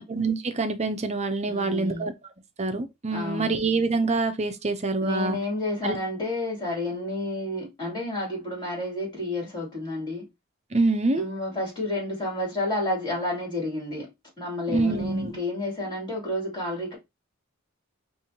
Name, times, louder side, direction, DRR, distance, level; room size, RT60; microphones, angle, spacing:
voice 1, 0.0-2.1 2.6-5.4 5.8-6.0 10.7-11.3 14.7-15.4, right 3 dB, 30° right, 0.6 m, -26 dB
voice 2, 1.5-2.1 3.1-3.6 5.0-10.3 11.1-14.1 14.4-17.0, left 1 dB, 20° left, 2.6 m, -30 dB
5.4 x 2.6 x 2.8 m
head